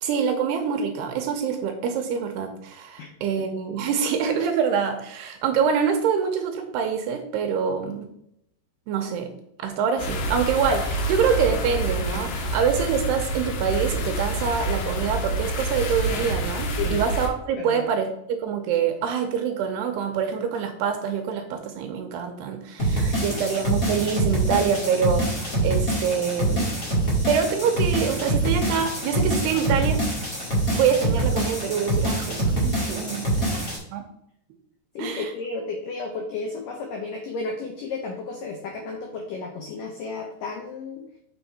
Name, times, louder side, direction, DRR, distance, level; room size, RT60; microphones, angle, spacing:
voice 1, 0.0-8.1 8.9-9.3 9.6-26.7 27.3-30.0 30.7-33.5 33.9-34.0 35.0-35.3, right 7 dB, 75° right, 4 dB, 2.6 m, -25 dB
sound 1, 10.0-17.3, right 1 dB, 70° left, 3.0 m, -27 dB
sound 2, 22.8-33.8, right 1 dB, 40° left, 1.2 m, -25 dB
voice 2, 34.9-41.0, left 4 dB, 90° left, 2 dB, 1.9 m, -33 dB
7.0 x 6.4 x 4.2 m, 0.75 s
omnidirectional pair, 5.2 m